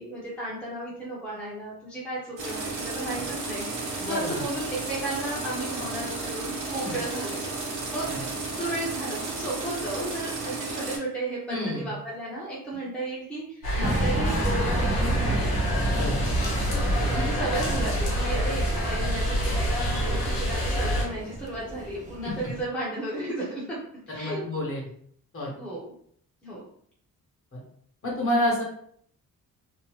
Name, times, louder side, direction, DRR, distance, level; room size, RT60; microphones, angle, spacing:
voice 1, 0.0-7.5 7.9-15.5 17.1-23.8 24.1-24.4 25.6-25.9 26.4-26.6, right 1 dB, 5° left, -7 dB, 0.7 m, -34 dB
sound 1, 2.4-11.0, right 3 dB, 60° right, 0.8 m, -33 dB
voice 2, 4.0-4.4 6.8-7.0 8.0-8.2 11.5-11.9 13.8-14.0 15.9-16.2 17.0-17.2 22.2-22.3 24.1-24.8 25.3-25.5 27.5-27.6 28.0-28.6, left 1 dB, 35° left, -4 dB, 1.1 m, -29 dB
sound 2, 13.6-21.0, equal, 85° left, 0.9 m, -26 dB
sound 3, 13.8-22.6, right 1 dB, 25° right, 0.3 m, -32 dB
2.7 x 2.1 x 3.0 m, 0.62 s
wide cardioid pair, 155°, 36 cm